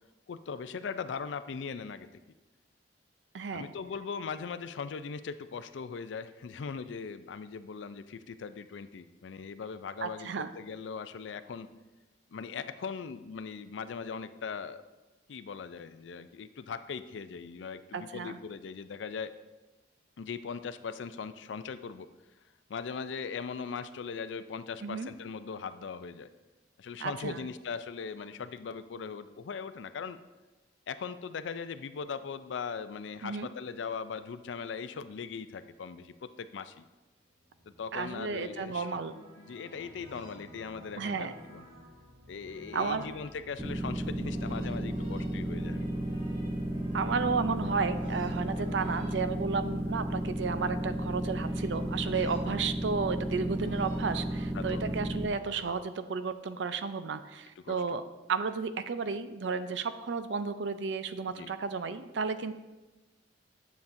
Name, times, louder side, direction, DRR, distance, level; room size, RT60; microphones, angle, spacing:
voice 1, 0.3-2.1 3.5-11.7 12.3-14.8 15.3-19.3 20.2-22.1 22.7-26.3 26.8-30.2 30.9-36.8 37.8-38.9 39.4-41.7 42.3-46.2 48.6-48.7 52.2-52.3 54.5-55.0 57.6-58.0 61.3-61.5, left 5 dB, 80° left, 12 dB, 0.4 m, -40 dB
voice 2, 3.3-3.7 10.0-10.5 17.9-18.4 24.8-25.1 27.0-27.4 33.2-33.5 37.9-39.1 41.0-41.3 42.7-43.1 46.9-58.0 58.3-62.5, right 5 dB, 75° right, 11 dB, 0.5 m, -33 dB
sound 1, 37.4-55.6, left 1 dB, 50° right, 2.6 m, -51 dB
sound 2, 43.6-55.3, right 1 dB, 15° right, 0.5 m, -33 dB
9.4 x 7.0 x 2.6 m, 1.1 s
head